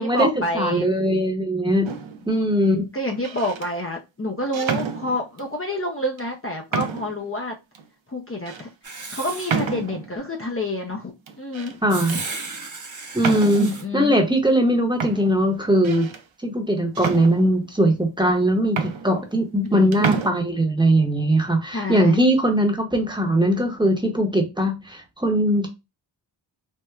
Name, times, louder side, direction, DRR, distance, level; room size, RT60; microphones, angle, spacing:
voice 1, 0.0-0.9 2.9-7.6 8.1-8.7 9.1-11.1 11.4-11.8 13.2-14.1 19.7-20.1 21.7-22.2, left 1 dB, 30° left, 0.5 m, -28 dB
voice 2, 0.5-1.9 2.3-2.8 11.8-12.2 13.1-16.1 16.4-25.7, right 1 dB, 10° right, 0.8 m, -20 dB
sound 1, 1.8-2.3 3.1-3.7 4.5-5.5 6.2-6.3 6.7-7.2 7.7-7.8 8.5-8.6 9.5-10.1 11.3-11.8 12.1-12.4 13.2-13.8 14.6-14.7 15.0-16.2 16.9-17.8 18.4-18.5 18.7-19.7 19.9-20.3, right 6 dB, 80° right, 0.6 m, -29 dB
Writing, 8.8-9.6 11.9-13.8, right 3 dB, 40° right, 0.8 m, -34 dB
4.4 x 2.1 x 2.3 m
wide cardioid pair, 75°, 47 cm